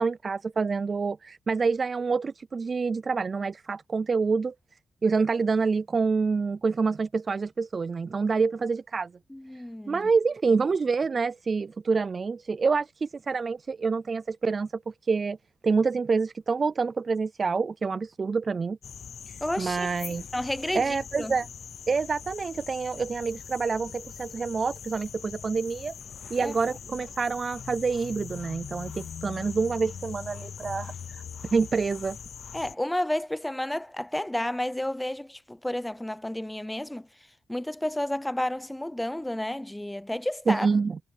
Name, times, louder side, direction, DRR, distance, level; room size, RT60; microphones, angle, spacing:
voice 1, 0.0-4.5 5.0-9.1 9.5-15.4 15.6-18.8 19.3-20.2 20.7-21.5 21.9-25.9 26.3-30.9 31.5-32.2 40.5-41.0, right 4 dB, 35° right, 0.3 m, -27 dB
voice 2, 9.3-10.1 19.4-19.9 20.3-21.4 26.4-26.6 32.5-37.1 37.5-40.7, left 1 dB, 5° left, 0.6 m, -31 dB
sound 1, 18.8-32.7, left 7 dB, 60° left, 0.7 m, -42 dB
cardioid pair, 120°, 0 cm